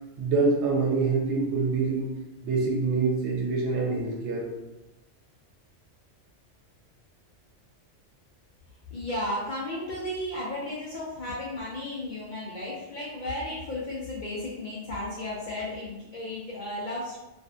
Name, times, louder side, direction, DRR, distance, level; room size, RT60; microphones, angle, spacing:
voice 1, 0.2-2.1 2.4-4.5, right 4 dB, 70° right, -2 dB, 0.9 m, -25 dB
voice 2, 8.9-17.2, left 1 dB, 60° left, -6 dB, 0.5 m, -34 dB
2.5 x 2.5 x 2.2 m, 0.99 s
omnidirectional pair, 1.2 m